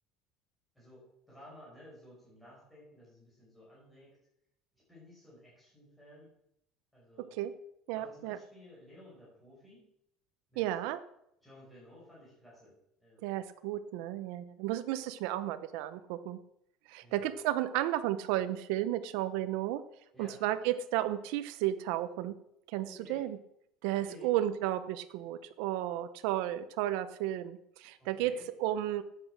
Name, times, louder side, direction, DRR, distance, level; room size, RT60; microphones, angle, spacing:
voice 1, 0.7-4.2 4.7-6.3 6.9-7.4 7.9-9.9 10.5-10.7 11.4-12.7 13.0-13.3 17.0-17.4 20.1-20.4 22.8-23.3 24.0-24.3 28.0-28.5, left 1 dB, ahead, -6 dB, 6.0 m, -55 dB
voice 2, 7.9-8.4 10.6-11.0 13.2-16.4 16.9-19.8 20.2-22.3 22.7-23.4 23.8-28.3 28.6-29.0, right 13 dB, 75° right, 11 dB, 0.7 m, -33 dB
13.0 x 8.7 x 6.1 m, 0.77 s
cardioid pair, 160°, 0 cm